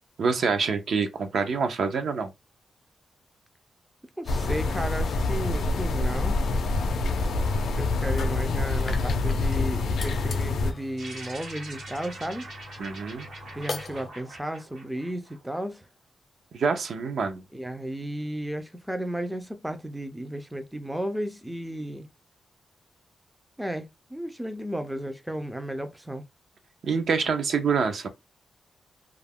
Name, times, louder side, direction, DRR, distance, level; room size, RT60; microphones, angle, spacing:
voice 1, 0.2-2.3 12.8-13.3 16.5-17.4 26.8-28.1, right 5 dB, 70° right, 0.5 m, -26 dB
voice 2, 4.2-6.5 7.7-12.5 13.6-15.9 17.5-22.1 23.6-26.2, right 1 dB, 5° right, 0.4 m, -34 dB
sound 1, 4.3-10.7, left 3 dB, 90° left, 0.4 m, -26 dB
sound 2, 8.4-14.1, left 4 dB, 45° left, 0.6 m, -42 dB
sound 3, 11.0-15.7, right 2 dB, 90° right, 1.2 m, -43 dB
2.3 x 2.1 x 3.4 m
wide cardioid pair, 120°, 0 cm